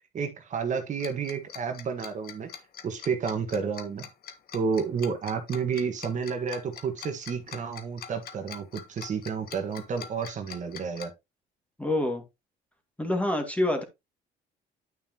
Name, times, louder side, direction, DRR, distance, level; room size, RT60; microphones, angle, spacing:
voice 1, 0.1-2.5 2.8-4.1 4.5-11.1, right 6 dB, 45° right, 1.7 m, -31 dB
Tick-tock, 1.0-11.1, left 8 dB, 60° left, 1.5 m, -43 dB
voice 2, 11.8-12.2 13.0-13.8, left 1 dB, 10° left, 2.1 m, -26 dB
9.7 x 5.5 x 2.9 m
cardioid pair, 110°, 17 cm